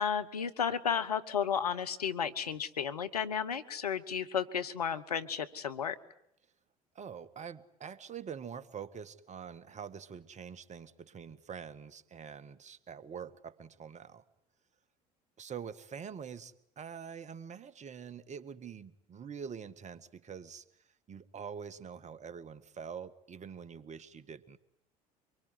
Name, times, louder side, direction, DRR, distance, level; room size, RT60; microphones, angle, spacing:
voice 1, 0.0-6.0, left 7 dB, 90° left, 13 dB, 1.3 m, -33 dB
voice 2, 7.0-14.2 15.4-20.6 21.1-24.6, right 7 dB, 35° right, 15 dB, 1.8 m, -45 dB
25.0 x 23.5 x 9.6 m, 0.73 s
hypercardioid pair, 70°, 19 cm